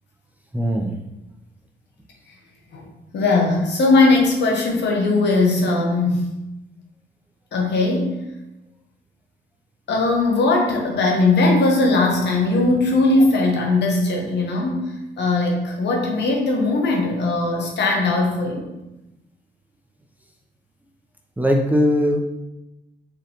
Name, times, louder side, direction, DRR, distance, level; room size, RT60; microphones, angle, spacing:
voice 1, 0.5-0.9 21.4-22.2, left 1 dB, 10° right, 1 dB, 0.5 m, -19 dB
voice 2, 3.1-6.3 7.5-8.2 9.9-18.7, left 2 dB, 60° left, 0 dB, 1.1 m, -19 dB
4.8 x 3.1 x 2.9 m, 0.95 s
cardioid pair, 90°, 20 cm